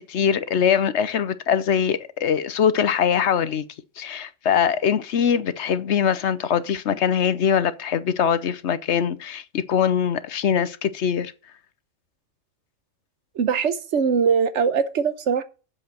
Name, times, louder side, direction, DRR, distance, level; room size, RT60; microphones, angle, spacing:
voice 1, 0.0-3.6 4.0-11.3, left 8 dB, 65° left, 0.9 m, -22 dB
voice 2, 13.4-15.4, right 6 dB, 65° right, 1.1 m, -21 dB
7.8 x 7.3 x 6.5 m
omnidirectional pair, 1.4 m